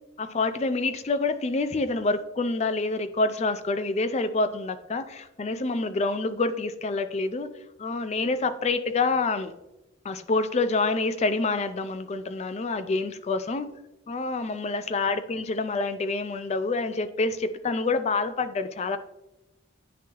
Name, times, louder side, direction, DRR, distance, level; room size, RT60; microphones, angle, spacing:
voice 1, 0.2-7.5 7.8-9.5 10.0-13.7 14.1-19.0, left 3 dB, 35° left, 11 dB, 0.4 m, -27 dB
10.0 x 3.5 x 3.0 m, 0.95 s
head